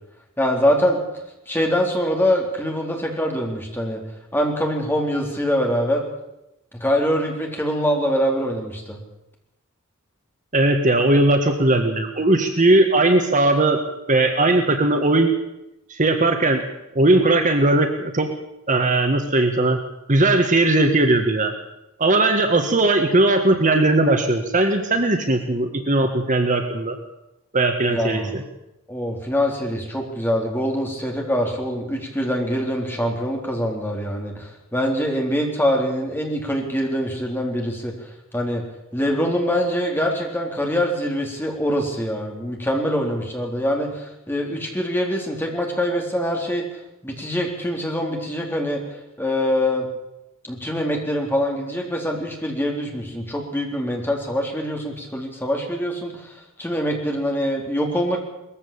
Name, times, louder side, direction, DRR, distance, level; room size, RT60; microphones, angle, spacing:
voice 1, 0.4-1.0 1.5-4.0 4.3-6.0 6.8-9.0 27.9-28.4 28.9-38.6 38.9-46.6 47.0-48.8 49.2-49.9 50.4-56.3 56.6-58.2, equal, 10° left, 1 dB, 3.8 m, -24 dB
voice 2, 10.5-13.8 14.1-15.3 15.9-16.6 17.0-18.3 18.7-19.8 20.1-21.5 22.0-27.0 27.5-28.4, right 2 dB, 35° right, 6 dB, 1.7 m, -18 dB
20.5 x 15.0 x 8.7 m, 0.90 s
head